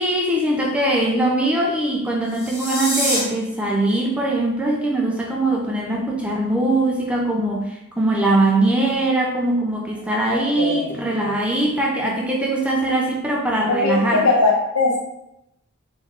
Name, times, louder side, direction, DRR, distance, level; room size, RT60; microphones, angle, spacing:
voice 1, 0.0-14.3, right 1 dB, 5° right, -1 dB, 0.4 m, -21 dB
sound 1, 2.2-3.2, left 1 dB, 10° left, 0.9 m, -25 dB
voice 2, 10.0-11.0 11.3-11.4 13.7-15.0, left 3 dB, 85° left, -3 dB, 1.2 m, -21 dB
3.4 x 3.1 x 3.4 m, 0.84 s
head